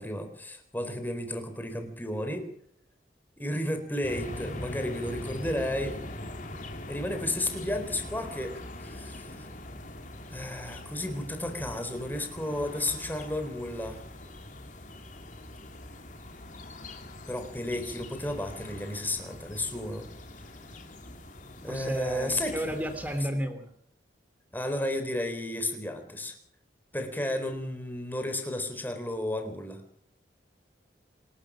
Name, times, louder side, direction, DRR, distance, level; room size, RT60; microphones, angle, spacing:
voice 1, 0.0-2.5 3.4-6.0 6.9-9.5 10.3-14.0 17.3-20.1 21.6-22.7 24.5-26.3 26.9-29.8, left 1 dB, 10° left, 6 dB, 4.0 m, -33 dB
sound 1, 4.0-23.3, left 1 dB, 45° left, 3.3 m, -42 dB
voice 2, 21.7-23.7, equal, 10° right, 7 dB, 3.1 m, -32 dB
27.0 x 12.5 x 7.6 m, 0.65 s
head